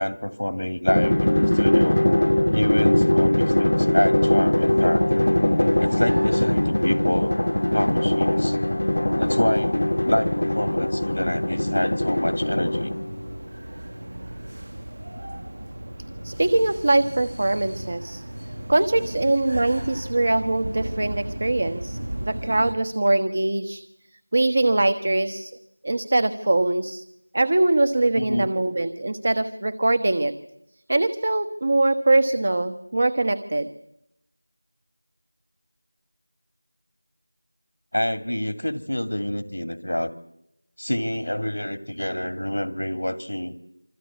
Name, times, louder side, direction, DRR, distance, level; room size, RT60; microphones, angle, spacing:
voice 1, 0.0-2.0 2.5-5.3 5.8-7.4 7.7-8.6 9.1-12.9 28.2-28.5 37.9-40.1 40.8-43.5, left 1 dB, 85° left, 10 dB, 2.1 m, -27 dB
Drum, 0.9-13.2, left 1 dB, 60° left, 1.2 m, -21 dB
sound 1, 4.5-22.7, right 1 dB, 55° right, 1.5 m, -36 dB
voice 2, 16.2-18.2 18.7-23.8 24.3-25.5 25.8-27.0 27.3-30.3 30.9-33.7, right 2 dB, 35° right, 13 dB, 1.2 m, -22 dB
27.0 x 25.5 x 8.5 m, 0.83 s
figure-of-eight pair, 175°, 0 cm